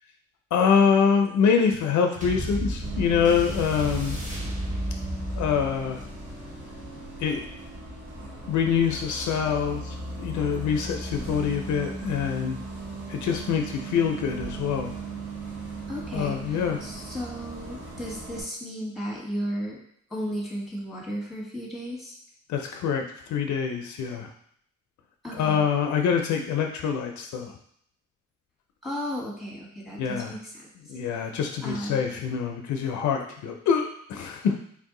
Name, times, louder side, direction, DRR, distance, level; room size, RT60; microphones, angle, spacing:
voice 1, 0.5-4.2 5.4-6.0 7.2-7.4 8.5-12.6 13.1-14.9 16.1-16.8 22.5-24.3 25.4-27.5 30.0-30.3 30.9-34.6, left 6 dB, 70° left, 4 dB, 0.6 m, -25 dB
sound 1, 2.2-11.0 11.7-11.8, equal, 25° right, 1.4 m, -35 dB
Bus, 2.8-18.4, right 2 dB, 75° right, 1.6 m, -38 dB
voice 2, 15.9-19.8 20.1-22.2 25.2-25.6 28.8-30.7 31.6-32.2, equal, ahead, -3 dB, 1.4 m, -34 dB
3.5 x 2.7 x 3.7 m, 0.66 s
cardioid pair, 90°, 30 cm